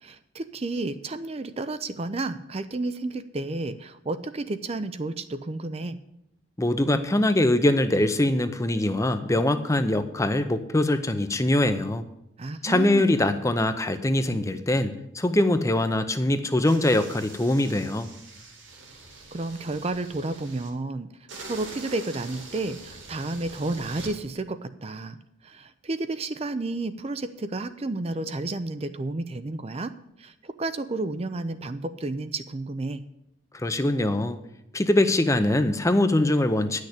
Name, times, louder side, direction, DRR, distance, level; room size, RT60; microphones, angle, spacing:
voice 1, 0.0-6.0 12.4-13.3 19.3-21.1 21.5-25.2 25.4-29.9 30.2-33.0, right 2 dB, 30° right, 11 dB, 0.5 m, -31 dB
voice 2, 6.6-12.1 12.6-18.1 33.5-34.4 34.7-36.8, left 1 dB, 15° left, 10 dB, 0.6 m, -23 dB
sound 1, 16.6-20.7 21.3-24.1, right 3 dB, 70° right, 2.6 m, -44 dB
9.9 x 6.5 x 8.3 m, 0.81 s
head